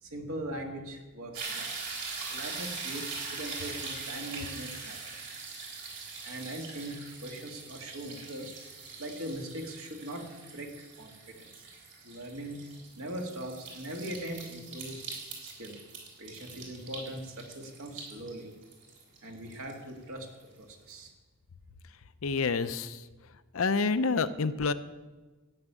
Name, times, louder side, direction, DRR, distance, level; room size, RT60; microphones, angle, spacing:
voice 1, 0.0-1.8 2.3-5.3 6.2-8.5 9.0-11.7 12.0-15.0 15.4-15.8 16.2-18.5 19.2-20.3 20.5-21.1, right 1 dB, 70° right, 2 dB, 2.2 m, -41 dB
sound 1, 1.3-20.4 20.9-21.0, right 4 dB, 55° right, 3.6 m, -42 dB
voice 2, 22.2-23.1 23.5-24.7, left 4 dB, 70° left, 13 dB, 0.6 m, -28 dB
13.5 x 7.2 x 9.1 m, 1.2 s
head